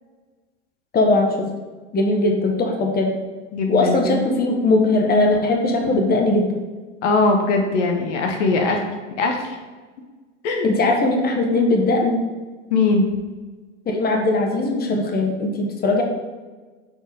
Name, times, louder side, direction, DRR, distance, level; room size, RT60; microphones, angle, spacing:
voice 1, 0.9-1.5 1.9-3.1 3.7-6.5 10.6-12.2 13.9-16.0, left 2 dB, 25° left, 2 dB, 1.1 m, -19 dB
voice 2, 3.5-4.2 7.0-8.8 9.2-9.5 10.4-10.7 12.7-13.1, left 3 dB, 70° left, 4 dB, 1.0 m, -20 dB
6.0 x 4.4 x 3.6 m, 1.3 s
hypercardioid pair, 90°, 37 cm